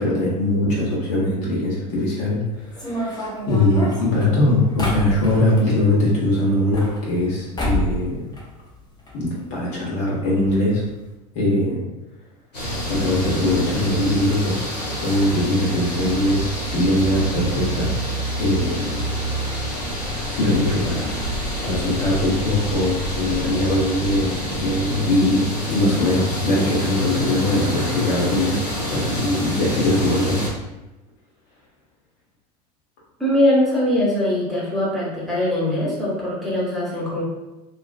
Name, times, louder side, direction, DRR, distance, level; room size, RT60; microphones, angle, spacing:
voice 1, 0.0-8.3 9.2-10.8 11.3-11.8 12.9-14.6 15.0-17.9 18.4-19.0 20.3-21.3 21.6-30.4, left 1 dB, 55° left, -6 dB, 0.9 m, -21 dB
sound 1, 2.7-5.7 6.5-7.3 7.6-8.0 8.3-9.1 9.4-9.5 9.7-9.8 10.5-10.6 10.9-11.1, left 1 dB, 20° left, 0.8 m, -28 dB
sound 2, 12.5-30.5, equal, 85° left, 0.8 m, -27 dB
voice 2, 33.2-37.2, left 1 dB, ahead, -7 dB, 1.0 m, -21 dB
2.4 x 2.3 x 2.3 m, 1.0 s
figure-of-eight pair, 75°, 21 cm